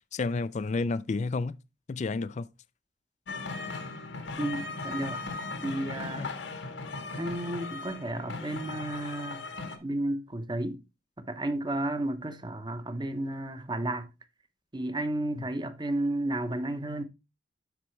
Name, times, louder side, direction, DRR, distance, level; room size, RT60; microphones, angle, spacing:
voice 1, 0.1-1.6 1.9-2.5 6.2-6.3, left 3 dB, 40° left, 0.4 m, -30 dB
sound 1, 3.3-9.8, left 3 dB, 90° left, 1.5 m, -38 dB
voice 2, 4.4-5.2 5.6-6.3 7.2-9.5 9.8-10.8 11.2-14.1 14.7-17.0, right 1 dB, 25° right, 0.9 m, -32 dB
12.0 x 4.3 x 3.2 m
head